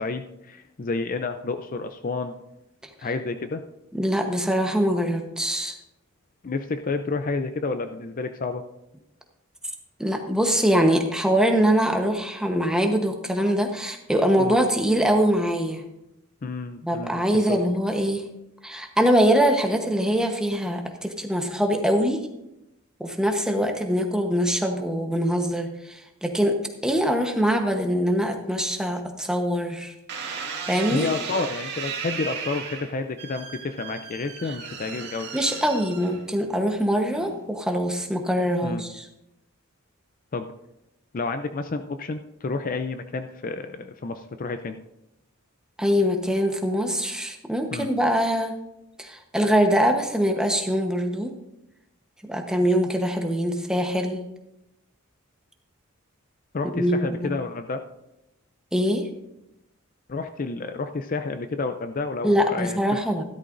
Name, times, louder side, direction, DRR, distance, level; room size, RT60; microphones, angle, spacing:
voice 1, 0.0-2.3 3.0-3.6 6.4-8.6 14.4-14.5 16.4-17.6 30.9-35.3 38.6-38.8 40.3-40.5 41.1-44.8 47.7-47.9 56.5-57.8 60.1-63.0, left 3 dB, 40° left, 8 dB, 0.5 m, -30 dB
voice 2, 3.9-5.7 10.0-15.8 16.8-18.2 18.6-22.3 23.0-26.6 26.8-29.9 30.7-31.1 35.3-39.1 45.8-48.6 49.0-51.3 52.2-54.2 56.7-57.3 58.7-59.1 62.2-63.2, equal, 5° right, 3 dB, 1.0 m, -23 dB
sound 1, 30.1-36.5 37.1-37.6, right 6 dB, 50° right, 2.2 m, -35 dB
13.5 x 12.5 x 2.6 m, 0.88 s
head